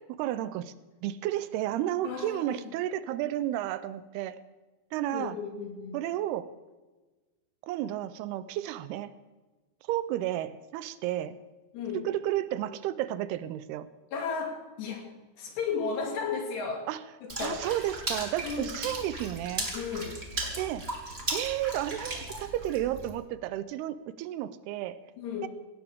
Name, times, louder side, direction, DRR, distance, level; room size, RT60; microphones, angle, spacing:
voice 1, 0.2-0.7 1.0-4.4 4.9-5.4 5.9-6.5 7.6-9.1 9.9-11.4 11.9-13.9 16.9-17.0 17.4-19.7 20.6-20.9 21.3-25.0 25.4-25.5, right 13 dB, 85° right, 15 dB, 2.6 m, -32 dB
voice 2, 2.0-2.7 5.1-6.0 11.7-12.1 14.1-15.1 15.4-16.9 17.2-17.6 18.4-18.9 19.7-20.2 25.2-25.5, left 5 dB, 85° left, 1 dB, 4.6 m, -34 dB
Water / Splash splatter, 17.3-23.1, right 2 dB, 20° right, 1.8 m, -36 dB
18.0 x 16.0 x 3.6 m, 1.2 s
omnidirectional pair, 4.7 m